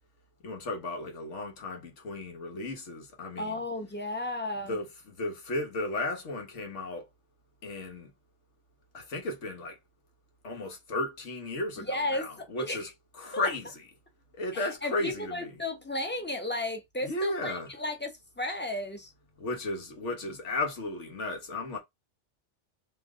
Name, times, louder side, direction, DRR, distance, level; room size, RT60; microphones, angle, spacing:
voice 1, 0.4-3.6 4.7-7.1 7.6-8.1 8.9-9.8 10.4-12.9 13.2-13.6 14.4-15.5 17.0-17.7 19.4-21.8, left 2 dB, 80° left, 1.5 m, -34 dB
voice 2, 3.4-4.8 11.8-12.9 13.3-13.5 14.5-19.1, left 1 dB, 10° left, 0.8 m, -34 dB
3.3 x 3.1 x 3.6 m
omnidirectional pair, 1.2 m